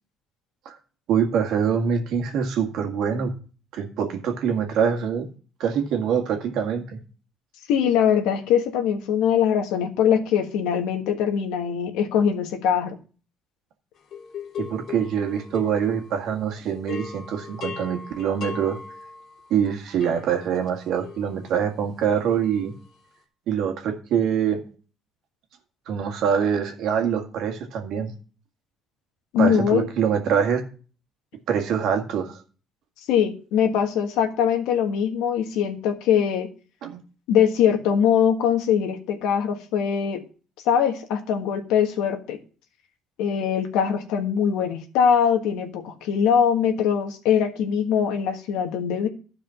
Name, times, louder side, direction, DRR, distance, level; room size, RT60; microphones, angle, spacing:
voice 1, 1.1-3.3 3.7-5.3 5.6-6.8 14.6-18.8 19.5-22.7 23.5-24.6 25.9-28.1 29.4-30.6 31.5-32.4 36.8-37.0, right 7 dB, 75° right, 4 dB, 1.8 m, -24 dB
voice 2, 7.7-13.0 29.3-29.9 33.1-36.5 37.3-40.2 40.6-42.4 43.2-49.1, left 8 dB, 85° left, 5 dB, 1.4 m, -22 dB
sound 1, 14.1-16.4 16.7-23.1, left 6 dB, 65° left, 2.6 m, -39 dB
12.0 x 4.9 x 5.7 m, 0.39 s
supercardioid pair, 80°, 0 cm